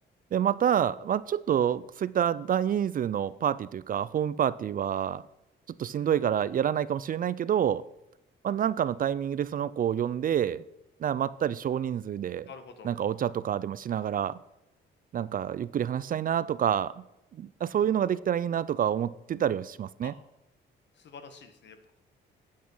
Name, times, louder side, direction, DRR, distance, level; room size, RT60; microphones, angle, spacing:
voice 1, 0.3-5.2 5.8-7.8 8.4-10.6 11.0-12.5 12.8-14.4 15.1-17.0 17.4-20.1, right 9 dB, 45° right, 18 dB, 0.4 m, -28 dB
voice 2, 5.9-6.2 12.5-12.9 20.0-20.1 20.9-22.0, left 5 dB, 65° left, 8 dB, 1.4 m, -48 dB
8.7 x 8.3 x 5.5 m, 0.89 s
cardioid pair, 90°, 20 cm